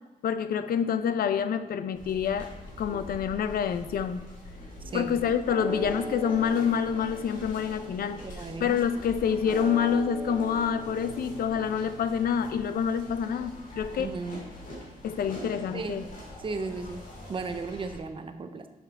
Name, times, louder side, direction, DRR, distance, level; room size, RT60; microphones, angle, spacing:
voice 1, 0.2-2.5 2.8-4.3 4.9-14.1 15.0-16.0, left 7 dB, 85° left, 11 dB, 0.5 m, -27 dB
sound 1, 1.9-18.0, left 1 dB, 60° left, 2.1 m, -44 dB
sound 2, 5.4-15.9, right 1 dB, 65° right, 1.5 m, -42 dB
voice 2, 8.1-8.8 14.0-14.4 15.7-16.1 16.4-17.0 17.3-18.7, right 4 dB, 35° right, 8 dB, 0.6 m, -35 dB
6.9 x 5.8 x 4.5 m, 1.2 s
wide cardioid pair, 150°, 15 cm